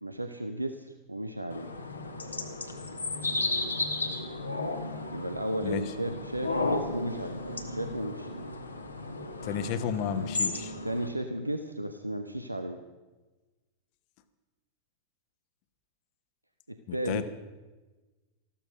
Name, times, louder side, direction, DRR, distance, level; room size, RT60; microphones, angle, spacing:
voice 1, 0.0-1.7 5.1-8.5 10.8-12.8 16.7-17.2, right 1 dB, 85° right, 7 dB, 0.7 m, -34 dB
sound 1, 1.5-11.1, left 2 dB, 80° left, 1.3 m, -34 dB
voice 2, 9.4-10.7 16.9-17.3, left 8 dB, 45° left, 11 dB, 1.1 m, -32 dB
14.0 x 13.0 x 6.2 m, 1.2 s
figure-of-eight pair, 90°, 0 cm